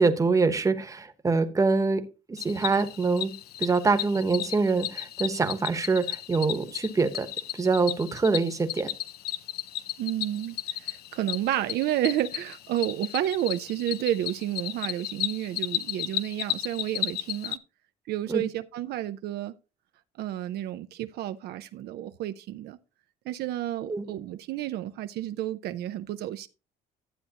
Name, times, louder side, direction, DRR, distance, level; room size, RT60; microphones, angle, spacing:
voice 1, 0.0-2.0 2.3-3.3 3.6-7.3 7.5-8.9 18.3-18.4 23.9-24.0, right 4 dB, 20° right, 1.1 m, -25 dB
Cricket, 2.4-17.6, left 12 dB, 65° left, 0.6 m, -34 dB
voice 2, 10.0-17.6 18.1-19.5 20.2-22.8 23.3-26.5, right 12 dB, 70° right, 0.6 m, -31 dB
12.0 x 7.8 x 2.9 m
cardioid pair, 110°, 17 cm